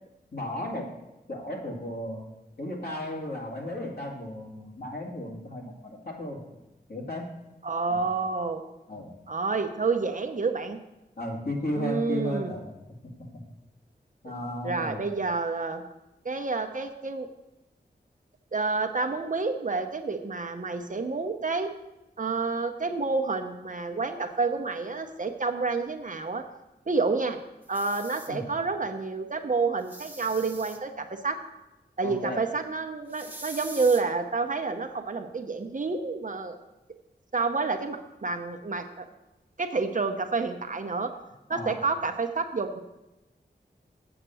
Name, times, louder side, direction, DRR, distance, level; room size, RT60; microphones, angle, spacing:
voice 1, 0.3-0.9 1.3-2.3 2.6-6.4 6.9-7.3 7.9-8.1 8.9-9.1 11.2-12.7 13.0-13.3 14.2-15.0 28.3-28.5 32.0-32.4 41.5-41.8, left 1 dB, 60° left, -1 dB, 2.2 m, -34 dB
voice 2, 7.6-8.6 9.3-10.8 11.8-12.5 14.6-15.8 16.2-17.3 18.5-21.7 22.2-26.4 26.9-27.4 27.7-31.4 32.0-36.6 37.3-39.1 39.6-41.1 41.5-42.8, right 4 dB, 45° right, 6 dB, 0.8 m, -29 dB
sound 1, 27.6-28.3 29.8-30.8 33.1-34.0, right 1 dB, 10° right, 1.0 m, -43 dB
8.0 x 5.8 x 7.7 m, 0.97 s
wide cardioid pair, 95°, 18 cm